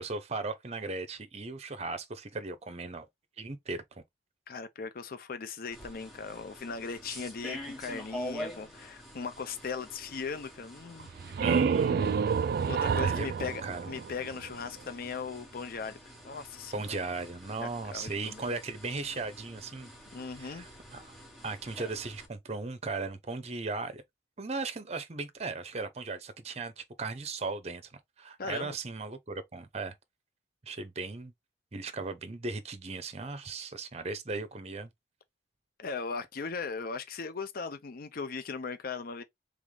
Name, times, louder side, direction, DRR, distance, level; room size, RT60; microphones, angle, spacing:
voice 1, 0.0-3.1 3.4-4.0 11.4-12.0 13.0-13.9 16.7-19.9 20.3-21.1 21.4-24.0 24.4-29.9 30.7-31.3 31.7-34.9, right 3 dB, 35° right, 0.7 m, -37 dB
voice 2, 4.5-11.4 11.8-12.4 12.7-13.6 13.9-16.9 17.6-18.4 20.1-20.7 28.4-28.7 35.8-39.2, left 5 dB, 55° left, 0.5 m, -38 dB
sound 1, 5.7-22.3, equal, ahead, 1.4 m, -47 dB
sound 2, 11.0-14.7, right 6 dB, 55° right, 0.3 m, -29 dB
3.5 x 3.4 x 3.7 m
head